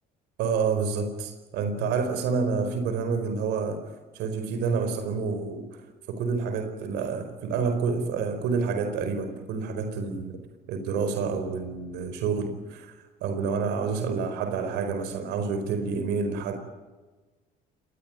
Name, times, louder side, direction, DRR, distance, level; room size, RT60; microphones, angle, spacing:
voice 1, 0.4-3.8 4.1-10.4 10.7-12.9 13.2-16.5, right 5 dB, 90° right, 7 dB, 4.6 m, -28 dB
24.5 x 20.0 x 9.0 m, 1.2 s
cardioid pair, 110°, 17 cm